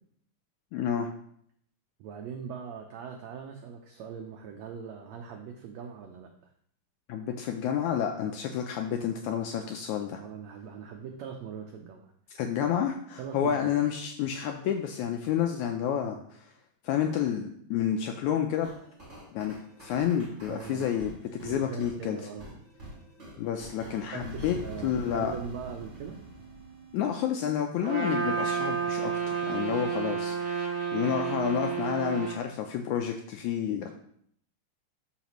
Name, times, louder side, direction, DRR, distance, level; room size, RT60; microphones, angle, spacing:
voice 1, 0.7-1.1 7.1-10.2 12.3-16.5 16.8-18.7 19.3-19.5 19.8-22.2 23.4-24.6 24.8-25.3 26.9-33.9, left 9 dB, 80° left, 4 dB, 1.7 m, -30 dB
voice 2, 2.0-6.3 8.2-8.3 10.2-12.1 13.2-13.8 20.5-20.9 21.4-22.5 23.9-26.2 30.0-30.2, right 7 dB, 90° right, 3 dB, 1.5 m, -41 dB
sound 1, 18.6-27.4, right 1 dB, 20° right, 2.6 m, -46 dB
Trumpet, 27.8-32.4, right 6 dB, 50° right, 1.2 m, -30 dB
12.5 x 4.9 x 3.0 m, 0.67 s
omnidirectional pair, 3.9 m